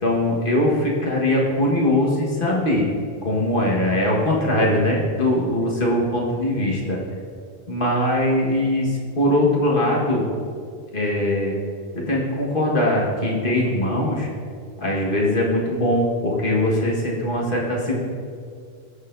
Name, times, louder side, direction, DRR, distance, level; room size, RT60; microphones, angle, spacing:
voice 1, 0.0-2.9 3.2-7.0 7.7-10.2 10.9-11.6 12.0-14.3 14.8-18.0, left 1 dB, 55° left, -3 dB, 1.7 m, -21 dB
16.5 x 6.6 x 2.6 m, 2.2 s
omnidirectional pair, 1.1 m